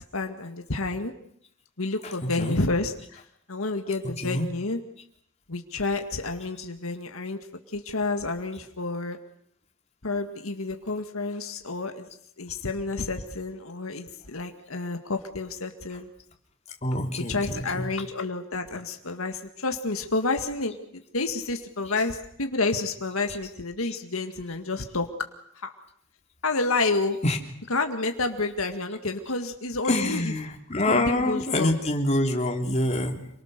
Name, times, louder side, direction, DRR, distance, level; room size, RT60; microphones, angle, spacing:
voice 1, 0.1-1.1 1.8-3.2 3.5-4.8 5.5-7.4 7.7-9.2 10.0-12.1 12.4-16.1 17.3-25.1 25.6-25.7 26.4-27.2 27.7-30.3 30.8-31.8, left 3 dB, 80° left, 6 dB, 2.0 m, -29 dB
voice 2, 2.0-2.6 3.9-4.5 16.8-17.9 22.0-22.1 27.2-27.4 29.8-33.3, left 1 dB, 30° left, 2 dB, 3.3 m, -26 dB
27.5 x 23.5 x 6.8 m, 0.71 s
head